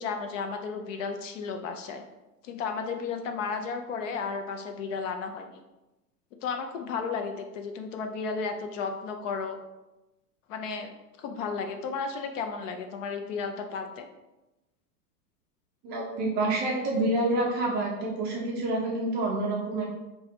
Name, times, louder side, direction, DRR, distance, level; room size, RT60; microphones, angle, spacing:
voice 1, 0.0-2.0 2.4-5.6 6.4-9.6 10.5-10.9 11.2-14.1, left 5 dB, 50° left, 5 dB, 0.6 m, -33 dB
voice 2, 15.8-19.9, right 2 dB, 25° right, -2 dB, 0.4 m, -28 dB
4.0 x 2.4 x 2.9 m, 1.0 s
hypercardioid pair, 100°, 48 cm